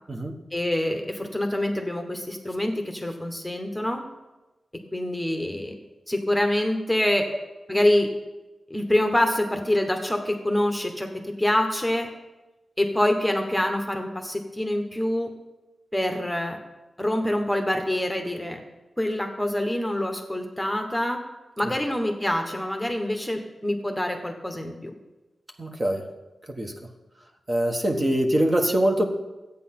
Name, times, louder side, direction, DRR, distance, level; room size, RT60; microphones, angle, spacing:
voice 1, 0.5-4.0 4.9-5.8 6.1-7.3 7.7-8.1 8.7-12.1 12.8-15.3 15.9-16.6 17.0-18.6 19.0-21.2 21.6-24.9, left 1 dB, 5° left, 4 dB, 1.3 m, -25 dB
voice 2, 25.6-26.1 26.5-26.7 27.5-29.0, right 1 dB, 30° right, 2 dB, 1.4 m, -24 dB
12.5 x 8.7 x 6.0 m, 1.1 s
wide cardioid pair, 95°, 0 cm